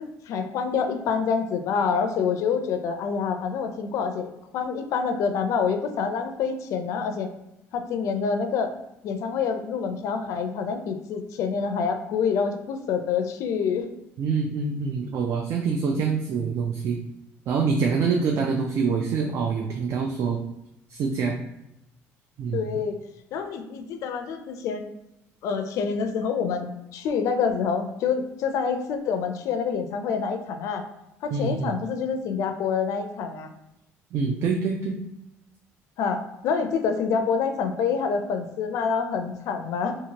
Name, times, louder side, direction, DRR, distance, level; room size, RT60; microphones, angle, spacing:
voice 1, 0.0-7.3 7.7-8.7 9.0-13.9 22.5-23.0 23.3-24.8 25.4-30.8 31.2-33.5 36.0-40.0, left 6 dB, 65° left, 7 dB, 0.4 m, -27 dB
voice 2, 14.2-17.0 17.5-20.4 20.9-21.4 22.4-22.7 31.3-31.8 34.1-35.0, right 5 dB, 50° right, 2 dB, 0.3 m, -25 dB
2.8 x 2.4 x 2.8 m, 0.85 s
cardioid pair, 110°, 6 cm